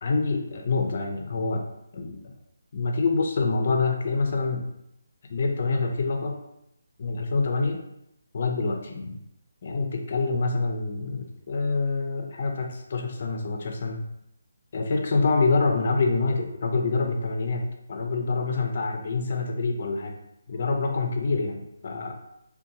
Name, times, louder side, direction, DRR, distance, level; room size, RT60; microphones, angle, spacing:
voice 1, 0.0-1.6 1.9-2.2 2.7-4.7 5.3-6.3 7.0-7.8 8.3-9.2 9.6-14.0 14.7-20.2 20.5-22.2, left 3 dB, 45° left, 3 dB, 0.4 m, -26 dB
2.5 x 2.2 x 2.8 m, 0.79 s
hypercardioid pair, 160°, 0 cm